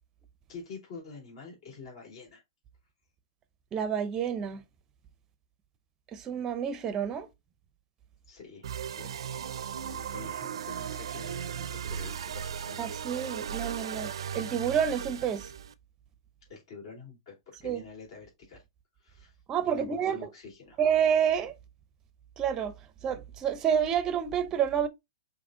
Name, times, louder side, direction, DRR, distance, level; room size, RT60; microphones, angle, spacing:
voice 1, 0.5-2.4 8.3-8.7 8.9-9.1 9.8-13.2 16.4-18.6 19.0-19.4 19.6-20.8, left 4 dB, 60° left, 2.8 m, -47 dB
voice 2, 3.7-4.6 6.1-7.3 12.8-15.5 17.6-17.8 19.5-20.3 20.8-21.5 22.4-22.7 23.0-24.9, right 8 dB, 20° right, 0.5 m, -29 dB
sound 1, 8.6-15.7, right 8 dB, 75° right, 0.4 m, -37 dB
5.2 x 2.8 x 2.6 m
hypercardioid pair, 150°, 3 cm